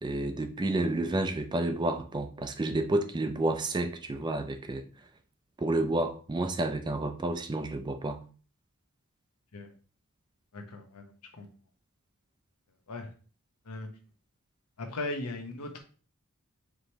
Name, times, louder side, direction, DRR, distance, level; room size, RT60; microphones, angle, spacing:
voice 1, 0.0-4.8 5.6-8.2, right 2 dB, 20° right, 0.4 m, -30 dB
voice 2, 10.5-11.1 11.4-11.5 12.9-13.1 13.7-13.9 14.8-15.8, left 2 dB, 85° left, 0.9 m, -37 dB
4.9 x 3.1 x 2.8 m
head